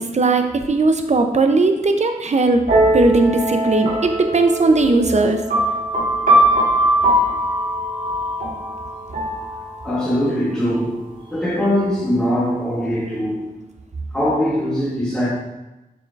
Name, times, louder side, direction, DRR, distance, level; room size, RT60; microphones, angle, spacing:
voice 1, 0.0-2.6 2.9-5.4, right 3 dB, 50° right, 0.7 m, -17 dB
sound 1, 2.7-10.2, right 1 dB, 70° right, 1.8 m, -20 dB
voice 2, 9.8-13.5 14.1-15.3, equal, 5° left, 1.5 m, -21 dB
7.0 x 5.9 x 2.5 m
wide cardioid pair, 70°, 15 cm